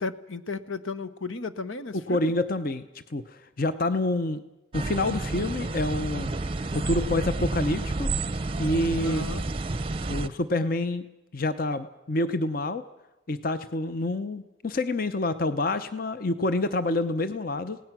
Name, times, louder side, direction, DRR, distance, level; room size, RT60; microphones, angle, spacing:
voice 1, 0.0-2.3 9.0-9.4, left 4 dB, 85° left, 12 dB, 1.0 m, -34 dB
voice 2, 1.9-2.8 3.1-4.4 4.7-6.3 6.7-8.1 8.6-9.2 10.1-11.0 11.3-12.8 13.3-17.8, left 2 dB, 45° left, 11 dB, 0.7 m, -27 dB
sound 1, 4.7-10.3, right 2 dB, 30° right, 0.6 m, -30 dB
28.5 x 17.5 x 6.1 m, 1.0 s
head